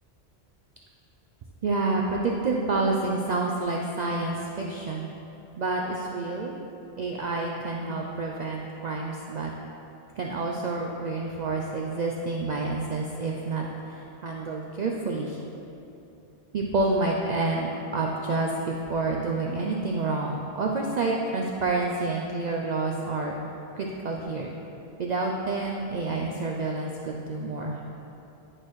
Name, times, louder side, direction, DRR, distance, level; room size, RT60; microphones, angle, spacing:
voice 1, 1.6-5.1 5.6-6.6 7.0-9.5 10.2-15.4 16.5-23.3 23.7-24.5 25.0-27.8, right 3 dB, 55° right, -1 dB, 0.5 m, -28 dB
10.5 x 4.4 x 3.1 m, 2.9 s
omnidirectional pair, 1.1 m